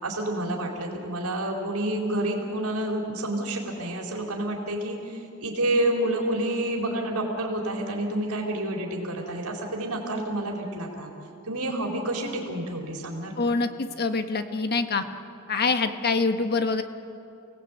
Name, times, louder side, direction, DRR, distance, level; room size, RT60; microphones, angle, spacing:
voice 1, 0.0-11.1 11.4-13.6, right 1 dB, 80° right, 0 dB, 4.5 m, -29 dB
voice 2, 13.4-15.0 15.5-16.8, left 4 dB, 45° left, 7 dB, 1.4 m, -25 dB
29.5 x 19.0 x 8.9 m, 2.7 s
head